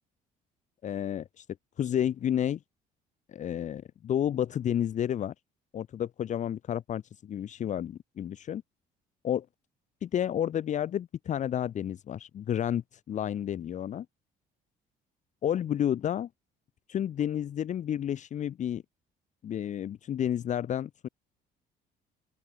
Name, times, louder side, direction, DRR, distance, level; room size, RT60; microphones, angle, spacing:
voice 1, 0.8-1.5 1.8-2.6 3.3-5.3 5.7-8.6 9.2-9.4 10.0-14.1 15.4-16.3 16.9-18.8 19.4-21.1, left 10 dB, 45° left, 0.8 m, -31 dB
open air
cardioid pair, 110°, 17 cm